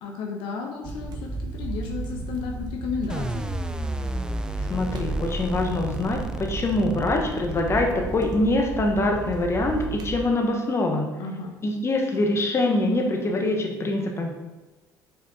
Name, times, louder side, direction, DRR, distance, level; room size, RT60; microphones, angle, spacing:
voice 1, 0.0-3.5 11.2-11.6, left 5 dB, 75° left, 1 dB, 0.8 m, -33 dB
sound 1, 0.8-10.2, right 2 dB, 55° right, 0.9 m, -34 dB
sound 2, 3.1-8.1, right 1 dB, 10° right, 0.4 m, -32 dB
voice 2, 4.7-11.1 11.6-14.3, left 2 dB, 30° left, 2 dB, 1.2 m, -24 dB
5.5 x 4.4 x 4.0 m, 1.2 s
supercardioid pair, 85°, 9 cm